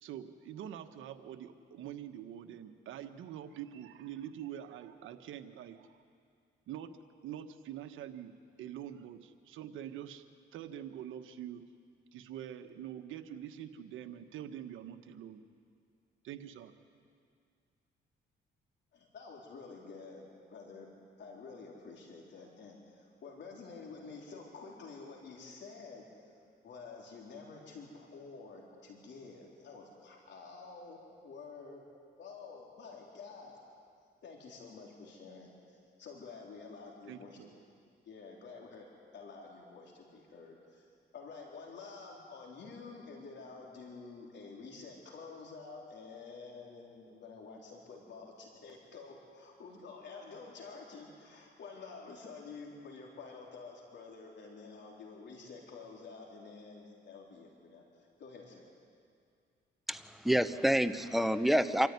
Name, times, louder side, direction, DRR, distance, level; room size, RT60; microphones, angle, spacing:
voice 1, 0.0-5.9 6.7-6.9 7.2-11.6 12.1-15.4 16.2-16.7 37.1-37.6, right 10 dB, 85° right, 8 dB, 1.3 m, -45 dB
voice 2, 18.9-20.2 20.5-20.9 21.2-26.3 26.6-31.8 32.2-33.6 34.2-37.4 38.1-38.9 39.1-40.8 41.1-58.6, left 4 dB, 65° left, -1 dB, 3.9 m, -49 dB
voice 3, 59.9-61.9, equal, ahead, 10 dB, 0.9 m, -28 dB
26.5 x 14.0 x 9.6 m, 2.3 s
cardioid pair, 90°, 20 cm